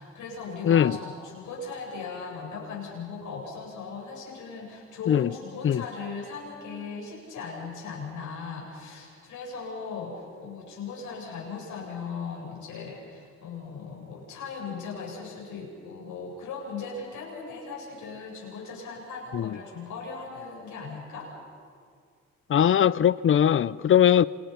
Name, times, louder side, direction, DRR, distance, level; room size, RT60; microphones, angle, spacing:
voice 1, 0.0-21.3, left 4 dB, 80° left, 7.9 m, -38 dB
voice 2, 0.7-1.0 5.1-5.3 5.6-5.8 19.3-19.5 22.5-24.2, left 9 dB, 45° left, 0.6 m, -20 dB
29.5 x 27.5 x 5.8 m
cardioid pair, 90°, 30 cm